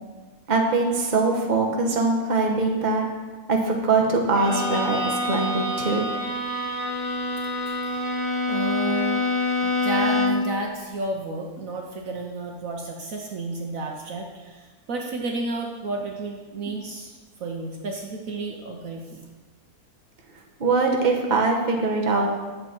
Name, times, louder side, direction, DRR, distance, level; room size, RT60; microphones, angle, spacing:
voice 1, 0.5-3.1 3.5-6.0 20.6-22.3, right 3 dB, 30° right, 1 dB, 1.2 m, -22 dB
Bowed string instrument, 4.3-10.6, left 2 dB, 20° left, 1.2 m, -26 dB
voice 2, 8.5-9.2 9.6-19.2, right 3 dB, 60° right, 1 dB, 1.2 m, -32 dB
10.5 x 7.3 x 4.4 m, 1.3 s
omnidirectional pair, 1.7 m